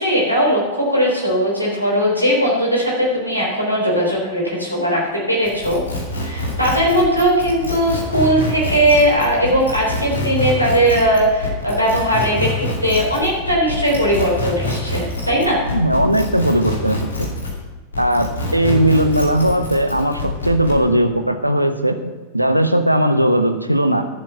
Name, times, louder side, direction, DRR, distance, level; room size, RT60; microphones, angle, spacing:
voice 1, 0.0-5.8 6.2-15.6, equal, 90° left, -3 dB, 3.6 m, -18 dB
sound 1, 5.4-17.6 17.9-20.8, left 2 dB, 75° left, 2.5 m, -26 dB
voice 2, 15.7-17.3 18.0-24.1, right 1 dB, 90° right, 8 dB, 0.8 m, -18 dB
13.0 x 7.4 x 5.6 m, 1.3 s
figure-of-eight pair, 90°, 0 cm